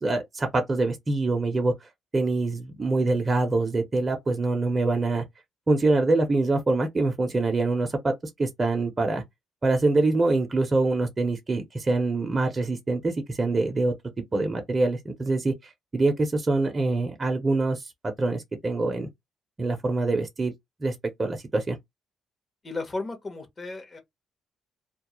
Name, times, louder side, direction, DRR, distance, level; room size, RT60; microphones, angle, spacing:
voice 1, 0.0-1.7 2.1-5.2 5.7-8.1 8.4-9.2 9.6-13.9 14.3-15.5 15.9-19.1 19.6-20.5 20.8-21.8, right 2 dB, 30° right, 0.6 m, -25 dB
voice 2, 22.6-24.0, left 2 dB, 30° left, 0.9 m, -34 dB
2.2 x 2.0 x 2.9 m
cardioid pair, 90°, 0 cm